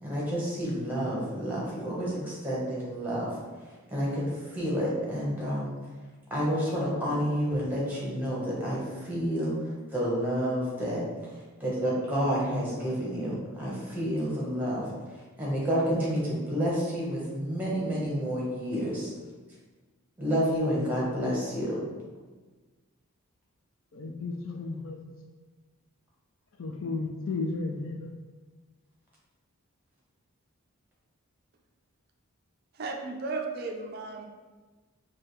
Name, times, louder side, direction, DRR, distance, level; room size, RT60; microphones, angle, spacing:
voice 1, 0.0-3.3 3.6-5.7 6.3-9.5 9.9-11.0 11.3-19.1 20.2-21.8, equal, 10° right, -5 dB, 0.9 m, -29 dB
voice 2, 23.9-25.0 26.6-28.1, left 3 dB, 60° left, 3 dB, 0.5 m, -33 dB
voice 3, 32.8-34.3, right 3 dB, 45° right, 2 dB, 0.4 m, -34 dB
4.9 x 2.3 x 3.1 m, 1.3 s
head